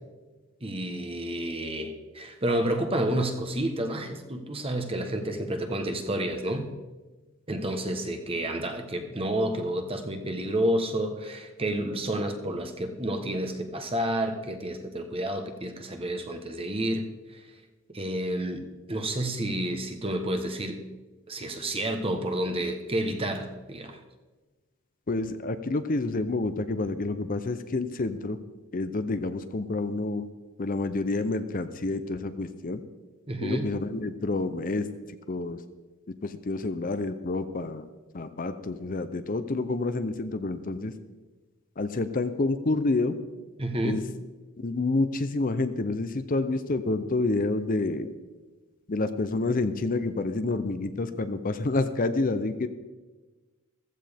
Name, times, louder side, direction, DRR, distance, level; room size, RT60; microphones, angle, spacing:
voice 1, 0.6-6.7 7.5-17.1 17.9-20.8 21.3-24.0 33.3-33.7 43.6-44.0, right 1 dB, 25° right, 6 dB, 1.1 m, -30 dB
voice 2, 25.1-28.4 28.7-30.3 30.6-32.8 33.4-34.9 35.3-35.6 36.2-37.8 38.1-40.9 41.8-43.2 43.8-44.0 44.6-48.1 48.9-52.7, left 2 dB, 40° left, 10 dB, 0.6 m, -28 dB
15.0 x 14.5 x 3.5 m, 1.2 s
head